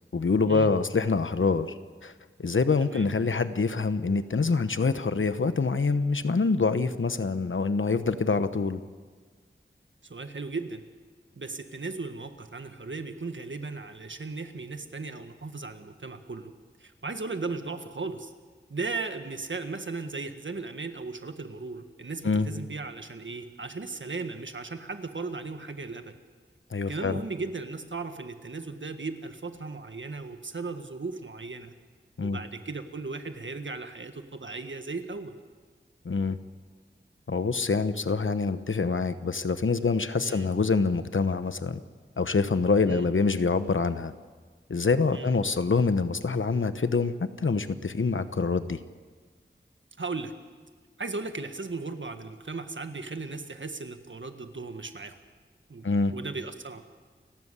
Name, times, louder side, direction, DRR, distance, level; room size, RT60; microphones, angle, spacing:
voice 1, 0.1-1.7 2.0-2.1 2.4-8.8 22.2-22.5 26.7-27.2 32.2-32.4 36.0-36.4 37.3-41.8 42.2-44.1 44.7-48.8 55.8-56.1, left 4 dB, 80° left, 11 dB, 1.1 m, -25 dB
voice 2, 10.0-10.8 11.3-16.5 16.8-18.3 18.7-26.1 26.9-31.7 32.2-35.3 40.2-40.5 42.9-43.1 45.1-45.3 50.0-50.3 51.0-55.2 55.7-55.8 56.1-56.8, right 3 dB, 70° right, 7 dB, 1.7 m, -36 dB
29.5 x 13.0 x 8.3 m, 1.5 s
wide cardioid pair, 60°, 20 cm